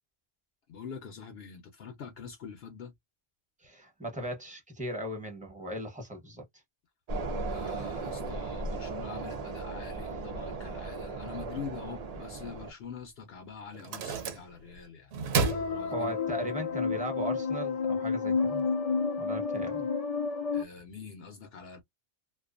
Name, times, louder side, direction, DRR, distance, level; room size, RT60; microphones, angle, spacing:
voice 1, 0.7-2.9 7.5-15.1 15.7-16.5 16.9-17.1 20.5-21.8, left 6 dB, 70° left, 0.8 m, -45 dB
voice 2, 3.6-6.4 15.9-18.7 19.2-19.8, right 1 dB, 5° right, 0.9 m, -37 dB
sound 1, 7.1-12.7, right 3 dB, 50° right, 0.5 m, -36 dB
sound 2, 13.0-13.1 13.7-14.8 15.1-16.5, right 5 dB, 75° right, 0.9 m, -32 dB
sound 3, 15.4-20.6, left 5 dB, 50° left, 0.4 m, -30 dB
2.3 x 2.3 x 2.4 m
omnidirectional pair, 1.1 m